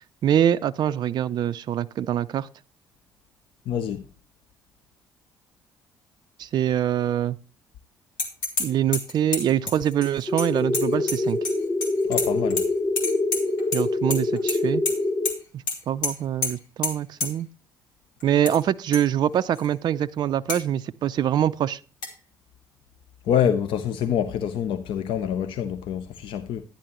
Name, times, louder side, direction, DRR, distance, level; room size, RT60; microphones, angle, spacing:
voice 1, 0.2-2.5 6.4-7.4 8.6-11.4 13.7-14.8 15.5-17.5 18.2-21.8, right 10 dB, 40° right, 0.4 m, -24 dB
voice 2, 3.7-4.1 12.1-12.7 23.2-26.6, left 9 dB, 55° left, 0.6 m, -26 dB
sound 1, 8.2-8.7 8.9-11.5 11.8-12.6 13.0-13.8 14.1-14.6 14.8-14.9 15.2-15.3 15.7-15.8 16.0-16.1 16.4-16.5 16.8-16.9 17.2-17.3 18.2-18.6 18.9-19.0 19.5-19.6 20.5-20.6 22.0-22.1, left 3 dB, 75° left, 1.6 m, -28 dB
sound 2, 10.3-15.3, left 2 dB, 35° left, 1.9 m, -25 dB
11.5 x 10.5 x 3.0 m
figure-of-eight pair, 50°, 11 cm